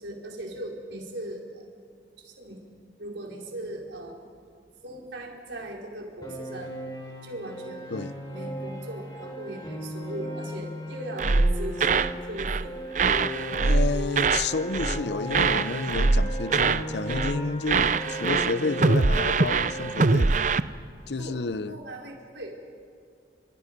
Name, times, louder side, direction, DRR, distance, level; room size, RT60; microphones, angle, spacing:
voice 1, 0.0-1.7 2.2-2.6 3.0-4.2 4.8-6.8 7.2-7.9 8.3-12.8 21.2-21.4 21.7-22.6, right 1 dB, 85° right, 4.5 m, -39 dB
Piano, 6.2-19.9, equal, 20° left, 4.9 m, -36 dB
sound 1, 11.2-12.1 12.4-12.7 12.9-14.5 14.7-15.0 15.3-16.8 17.1-17.4 17.7-20.6, right 4 dB, 45° right, 0.6 m, -23 dB
voice 2, 13.6-20.5 21.1-21.7, left 3 dB, 70° left, 0.8 m, -30 dB
29.5 x 27.0 x 5.3 m
head